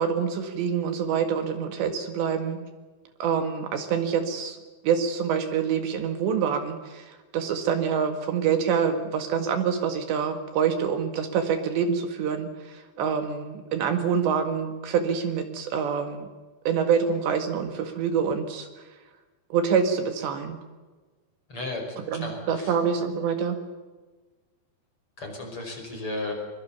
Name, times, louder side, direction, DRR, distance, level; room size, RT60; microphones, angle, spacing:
voice 1, 0.0-2.6 3.2-4.6 4.8-16.3 16.7-18.7 19.5-20.6 22.1-23.6, right 7 dB, 70° right, 7 dB, 4.0 m, -26 dB
voice 2, 21.5-22.8 25.2-26.3, left 2 dB, 30° left, 2 dB, 5.8 m, -34 dB
24.0 x 23.5 x 7.0 m, 1.3 s
omnidirectional pair, 5.3 m